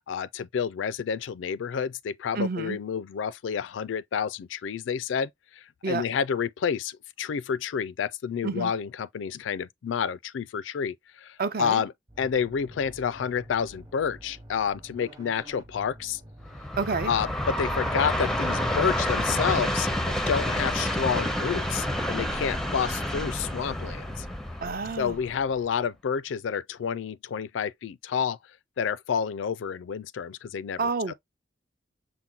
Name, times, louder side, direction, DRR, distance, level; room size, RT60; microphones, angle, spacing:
voice 1, 0.1-11.9 12.2-16.2 17.1-24.3 25.0-28.4 28.8-30.8, left 7 dB, 80° left, 0.4 m, -29 dB
voice 2, 2.3-2.8 5.8-6.0 8.4-8.7 11.4-11.8 16.8-17.1 24.6-25.2 30.8-31.1, right 4 dB, 55° right, 0.6 m, -29 dB
sound 1, 12.1-19.2, equal, 20° right, 0.8 m, -48 dB
Train, 16.5-25.7, left 1 dB, ahead, 0.5 m, -29 dB
5.8 x 2.1 x 3.7 m
head